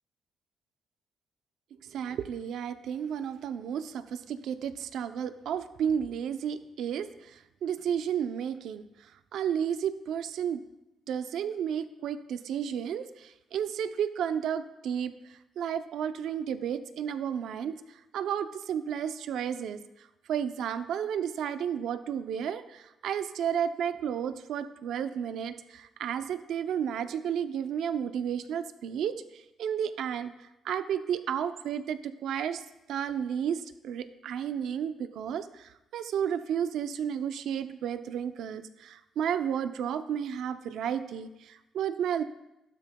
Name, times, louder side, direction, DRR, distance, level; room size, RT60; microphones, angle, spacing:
voice 1, 1.8-10.6 11.1-19.8 20.3-30.3 30.6-32.6 32.9-42.2, right 8 dB, 75° right, 10 dB, 0.6 m, -32 dB
13.0 x 12.0 x 2.3 m, 0.96 s
cardioid pair, 90°, 0 cm